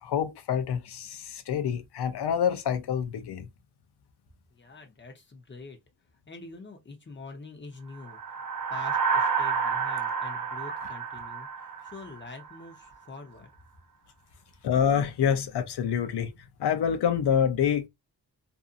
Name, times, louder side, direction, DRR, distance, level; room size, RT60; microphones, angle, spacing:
voice 1, 0.0-3.5 14.6-16.3 16.6-17.9, left 8 dB, 80° left, 0.6 m, -27 dB
voice 2, 4.5-5.8 6.3-8.3 8.7-13.5, left 3 dB, 30° left, 0.8 m, -45 dB
Solar Swell, 8.0-12.6, right 6 dB, 55° right, 0.6 m, -30 dB
2.6 x 2.5 x 2.4 m
wide cardioid pair, 135°, 39 cm